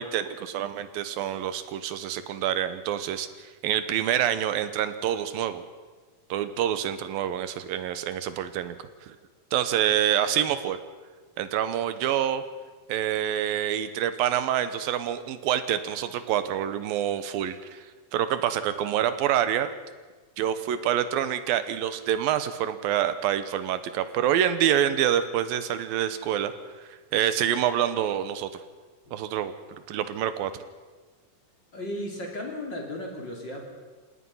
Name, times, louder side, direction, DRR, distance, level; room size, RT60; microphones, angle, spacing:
voice 1, 0.0-5.6 6.3-8.8 9.1-9.2 9.5-10.8 11.4-12.4 12.9-17.8 18.1-19.7 20.4-26.5 27.1-28.5 29.1-30.6, right 10 dB, 90° right, 11 dB, 2.9 m, -27 dB
voice 2, 31.7-33.7, left 1 dB, 30° left, 0 dB, 3.6 m, -35 dB
29.0 x 17.5 x 5.7 m, 1.4 s
omnidirectional pair, 4.0 m